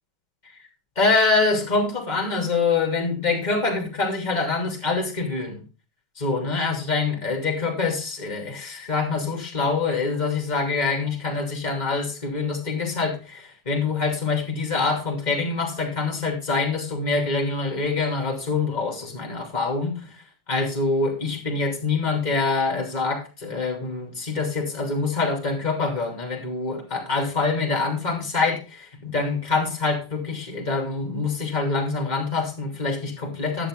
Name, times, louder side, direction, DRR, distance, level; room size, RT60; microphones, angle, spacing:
voice 1, 0.9-5.6 6.2-20.1 20.5-33.7, left 4 dB, 55° left, 0 dB, 3.1 m, -25 dB
11.5 x 7.3 x 3.8 m, 0.30 s
figure-of-eight pair, 90°, 0 cm